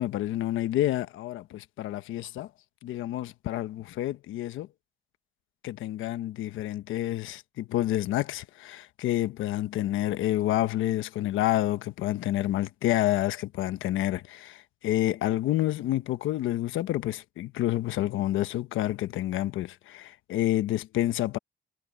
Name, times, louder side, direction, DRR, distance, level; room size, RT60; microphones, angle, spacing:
voice 1, 0.0-2.5 2.8-4.7 5.6-21.4, left 14 dB, 85° left, 1.1 m, -29 dB
cardioid pair, 90°, 20 cm